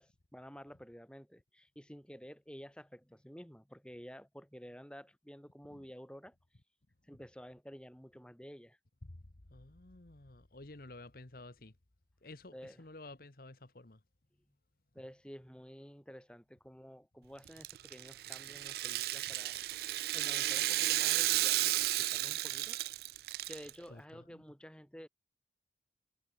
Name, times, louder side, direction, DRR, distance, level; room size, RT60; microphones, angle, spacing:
voice 1, 0.0-6.4 7.1-8.8 12.5-12.9 14.9-19.9 20.1-22.8 23.4-25.1, equal, 5° left, 3.9 m, -51 dB
voice 2, 9.5-11.7 12.2-14.0 23.9-24.0, left 2 dB, 55° left, 1.3 m, -52 dB
Rattle (instrument), 17.5-23.7, right 16 dB, 55° right, 0.3 m, -33 dB
head